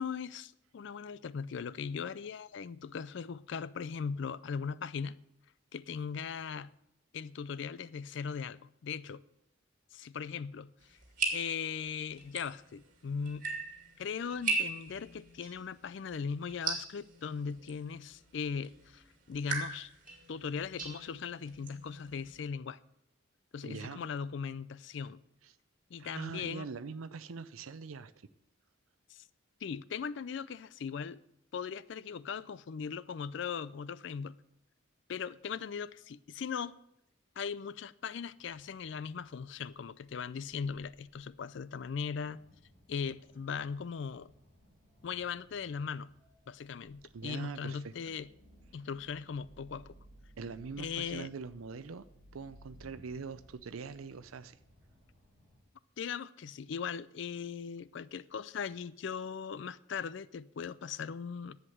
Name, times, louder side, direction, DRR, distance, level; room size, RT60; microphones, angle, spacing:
voice 1, 0.0-5.2 5.7-6.7 7.1-9.2 9.9-10.7 11.3-13.5 14.0-19.9 20.3-22.8 23.5-25.2 25.9-26.7 29.1-29.2 29.6-31.2 31.5-34.4 35.1-36.8 37.4-42.4 42.9-44.3 45.0-46.1 46.5-48.3 48.7-49.9 50.8-51.3 56.0-61.6, left 6 dB, 60° left, 0.4 m, -39 dB
sound 1, 10.8-22.5, right 4 dB, 40° right, 2.3 m, -40 dB
voice 2, 23.6-24.0 25.4-25.5 26.0-28.1 47.1-47.9 50.4-52.1 52.3-54.6, right 5 dB, 85° right, 0.5 m, -43 dB
sound 2, 38.4-55.6, equal, 20° left, 6.2 m, -61 dB
10.5 x 8.0 x 7.9 m
head